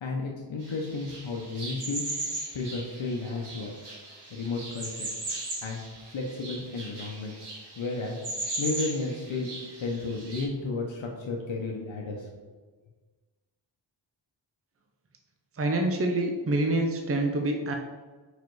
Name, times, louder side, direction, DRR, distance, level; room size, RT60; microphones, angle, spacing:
voice 1, 0.0-2.0 2.5-3.7 4.3-5.1 5.6-5.8 6.1-7.5 7.8-9.5 9.8-12.3, left 3 dB, 80° left, -1 dB, 0.9 m, -33 dB
sound 1, 0.6-10.4, right 2 dB, 60° right, 1.9 m, -38 dB
voice 2, 15.6-17.8, right 2 dB, 30° right, 3 dB, 0.7 m, -26 dB
5.1 x 4.9 x 4.7 m, 1.4 s
wide cardioid pair, 120°, 45 cm